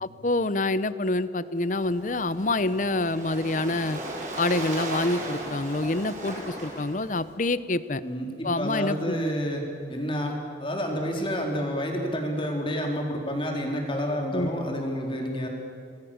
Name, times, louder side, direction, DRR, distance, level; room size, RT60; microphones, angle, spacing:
voice 1, 0.0-4.0 4.4-8.0 8.4-9.2 14.3-14.5, left 2 dB, 45° left, 15 dB, 0.8 m, -27 dB
Waves surf, 1.6-7.3, right 1 dB, 40° right, 5.9 m, -36 dB
voice 2, 8.0-9.6 9.9-10.3 10.6-15.5, equal, 30° left, 1 dB, 3.9 m, -29 dB
27.5 x 21.0 x 7.3 m, 2.5 s
head